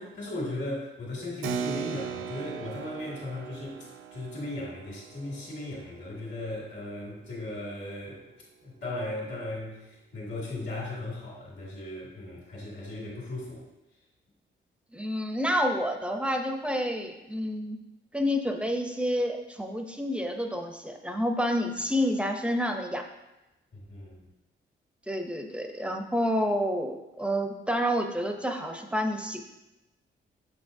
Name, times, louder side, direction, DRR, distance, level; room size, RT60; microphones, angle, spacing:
voice 1, 0.0-8.2 8.6-13.6 23.7-24.2, left 1 dB, 60° left, -5 dB, 2.0 m, -37 dB
Keyboard (musical), 1.4-7.5, right 7 dB, 85° right, 0.4 m, -39 dB
voice 2, 14.9-17.8 18.1-23.0 25.1-29.4, equal, 5° right, 4 dB, 0.4 m, -29 dB
6.8 x 6.0 x 2.6 m, 0.96 s
wide cardioid pair, 160°, 21 cm